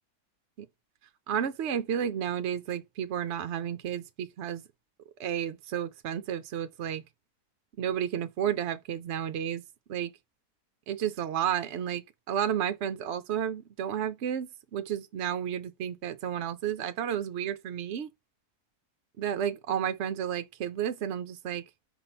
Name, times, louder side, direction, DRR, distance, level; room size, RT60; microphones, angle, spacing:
voice 1, 1.3-4.6 5.2-7.0 7.8-9.6 9.9-10.1 10.9-12.0 12.3-18.1 19.2-21.6, right 9 dB, 60° right, 0.7 m, -32 dB
5.6 x 3.9 x 5.9 m
omnidirectional pair, 1.7 m